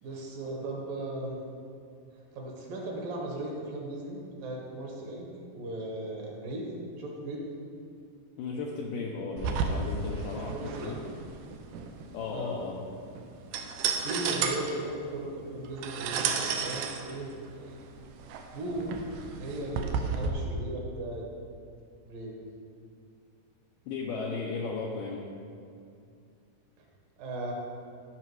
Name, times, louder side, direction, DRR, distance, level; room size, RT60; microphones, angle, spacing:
voice 1, 0.0-1.4 2.3-5.3 5.5-7.5 10.5-11.0 12.3-12.5 14.0-17.8 18.5-19.0 19.4-21.3 22.0-22.4 26.8-26.9 27.2-27.5, right 1 dB, 65° right, -1 dB, 2.8 m, -37 dB
voice 2, 8.4-11.0 12.1-12.8 23.9-25.3, left 4 dB, 85° left, -2 dB, 2.0 m, -35 dB
sound 1, 9.4-20.3, right 5 dB, 80° right, 2.6 m, -33 dB
13.5 x 5.8 x 4.7 m, 2.4 s
omnidirectional pair, 4.7 m